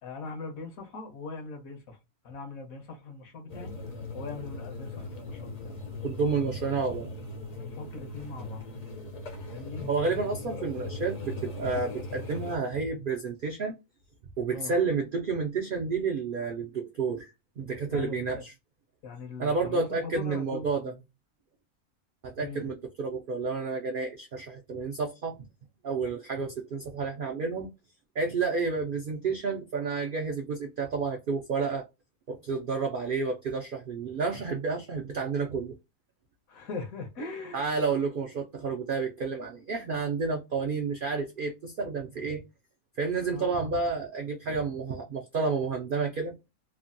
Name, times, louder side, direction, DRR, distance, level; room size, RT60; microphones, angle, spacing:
voice 1, 0.0-2.0 2.2-3.7 4.1-5.7 7.6-8.6 9.4-9.9 14.5-14.7 17.9-18.4 19.0-21.0 22.4-22.7 36.5-37.6 43.3-43.5, left 3 dB, 75° left, 1.2 m, -41 dB
sound 1, 3.5-12.6, left 2 dB, 50° left, 0.5 m, -39 dB
voice 2, 6.0-7.1 9.9-13.8 14.4-18.5 19.4-20.9 22.2-25.4 25.8-27.7 28.2-31.8 32.3-35.7 37.5-42.4 43.0-46.4, right 4 dB, 75° right, 0.4 m, -30 dB
3.2 x 2.2 x 2.5 m
omnidirectional pair, 1.5 m